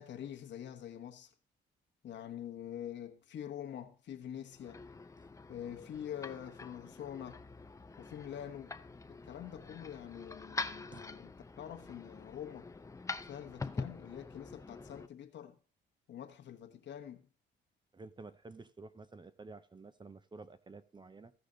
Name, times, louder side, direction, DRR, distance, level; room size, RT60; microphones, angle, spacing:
voice 1, 0.0-1.3 2.0-4.8 5.5-7.5 8.0-8.8 9.1-11.3 11.6-12.7 13.2-15.6 16.1-17.3, left 10 dB, 65° left, 1.2 m, -45 dB
sound 1, 4.5-15.1, left 3 dB, 15° left, 0.5 m, -45 dB
voice 2, 17.9-21.3, right 3 dB, 25° right, 0.7 m, -51 dB
15.0 x 5.0 x 3.9 m
cardioid pair, 90°, 20 cm